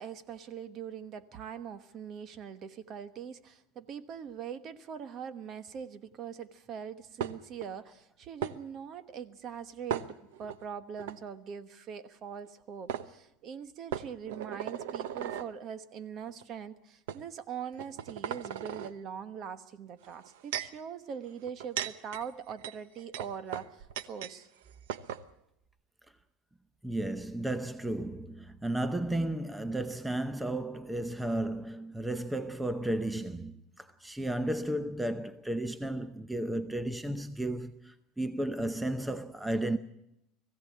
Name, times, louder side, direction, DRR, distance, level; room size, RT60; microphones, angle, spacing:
voice 1, 0.0-24.5, right 7 dB, 40° right, 1.2 m, -42 dB
sound 1, 7.2-7.7 8.4-8.6 9.9-10.6 11.0-11.2 12.5-12.6 12.9-13.1 13.9-15.5 16.3-16.4 17.1-17.2 17.7-18.9 20.0-20.8 21.4-24.4 24.6-24.7 24.9-25.2, right 9 dB, 90° right, 1.0 m, -37 dB
voice 2, 26.8-39.8, right 1 dB, 5° right, 0.7 m, -33 dB
20.0 x 16.0 x 8.5 m
supercardioid pair, 145°, 0 cm